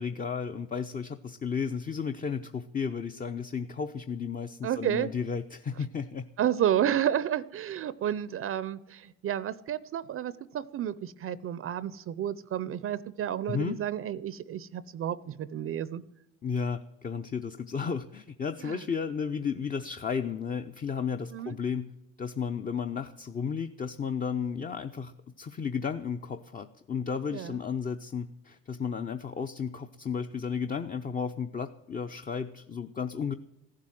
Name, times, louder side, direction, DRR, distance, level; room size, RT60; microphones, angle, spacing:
voice 1, 0.0-6.3 13.5-13.8 16.4-21.9 22.2-33.3, left 6 dB, 25° left, 8 dB, 0.7 m, -33 dB
voice 2, 4.6-5.1 6.4-16.0 18.6-18.8 21.3-21.5 27.3-27.6, right 10 dB, 45° right, 17 dB, 0.6 m, -31 dB
15.0 x 7.5 x 9.1 m, 0.92 s
cardioid pair, 105°, 31 cm